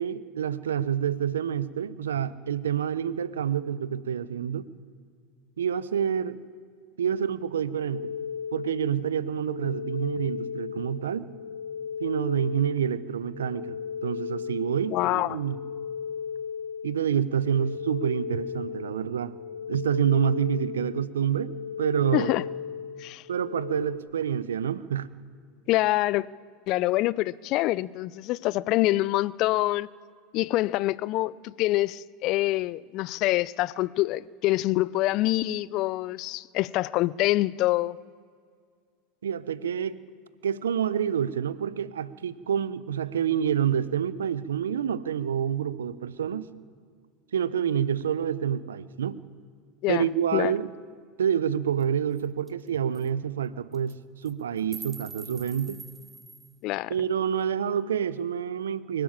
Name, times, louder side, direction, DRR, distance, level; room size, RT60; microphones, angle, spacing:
voice 1, 0.0-4.7 5.6-6.4 7.0-8.1 8.5-11.3 12.0-13.8 14.0-15.6 16.8-19.3 19.7-21.5 21.8-22.3 23.3-25.1 39.2-40.0 40.4-46.5 47.3-49.2 49.9-50.7 51.2-55.8 56.9-59.0, right 8 dB, 85° right, 0.9 m, -28 dB
sound 1, 7.9-24.0, left 7 dB, 85° left, 0.8 m, -36 dB
voice 2, 14.9-15.4 22.1-22.4 23.0-23.2 25.7-26.3 26.7-29.9 30.3-38.0 49.8-50.1 50.3-50.5 56.6-56.9, left 17 dB, 55° left, 0.5 m, -25 dB
sound 2, 51.8-51.9 52.2-52.3 52.5-52.7 52.9-53.1 53.7-53.9 54.3-56.6, right 4 dB, 20° right, 1.2 m, -44 dB
23.5 x 13.0 x 8.9 m
hypercardioid pair, 85°, 0 cm